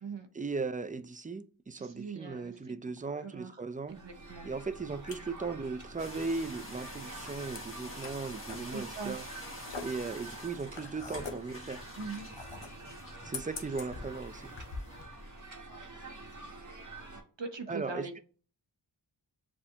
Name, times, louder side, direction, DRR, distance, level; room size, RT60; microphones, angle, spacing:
voice 1, 0.3-4.0 4.5-9.3 9.8-11.8 13.2-14.5 17.7-18.2, right 4 dB, 20° right, 0.3 m, -37 dB
voice 2, 1.7-2.5 3.2-3.6 3.9-4.5 8.7-9.2 11.9-12.3 17.4-18.2, right 4 dB, 65° right, 0.8 m, -41 dB
sound 1, 3.9-17.2, right 2 dB, 40° right, 1.2 m, -48 dB
sound 2, 4.6-15.0, left 4 dB, 60° left, 0.9 m, -46 dB
sound 3, 6.0-15.4, left 1 dB, 25° left, 1.3 m, -47 dB
7.0 x 2.5 x 2.8 m
wide cardioid pair, 40°, 47 cm